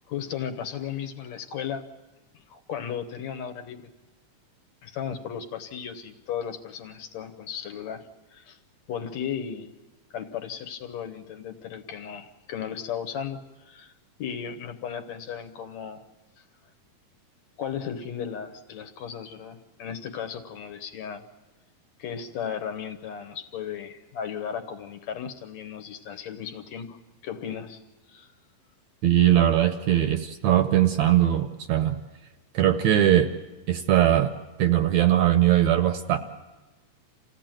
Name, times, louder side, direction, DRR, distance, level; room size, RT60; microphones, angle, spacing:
voice 1, 0.0-1.8 2.5-3.9 4.8-8.1 8.3-8.6 8.9-9.7 10.1-13.9 14.2-16.0 17.6-21.2 22.0-27.0 27.2-27.8 28.1-28.3, left 8 dB, 65° left, 6 dB, 2.1 m, -35 dB
voice 2, 29.0-32.0 32.5-33.3 33.7-34.3 34.6-36.2, right 12 dB, 70° right, 8 dB, 1.9 m, -20 dB
28.0 x 16.5 x 9.0 m, 1.2 s
omnidirectional pair, 3.8 m